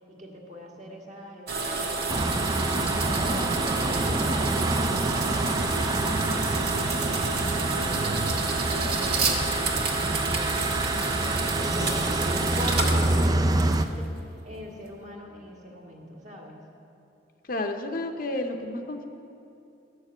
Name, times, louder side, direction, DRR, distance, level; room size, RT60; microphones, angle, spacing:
voice 1, 0.1-2.2 2.9-7.2 7.7-8.4 8.7-9.5 10.0-14.1 14.4-16.6, equal, 40° right, -1 dB, 1.9 m, -42 dB
sound 1, 1.5-14.0, right 3 dB, 55° right, 1.4 m, -29 dB
sound 2, 2.1-13.9, right 2 dB, 20° right, 0.4 m, -27 dB
voice 2, 17.5-19.0, left 1 dB, 50° left, 5 dB, 0.7 m, -31 dB
13.5 x 6.7 x 8.2 m, 2.8 s
head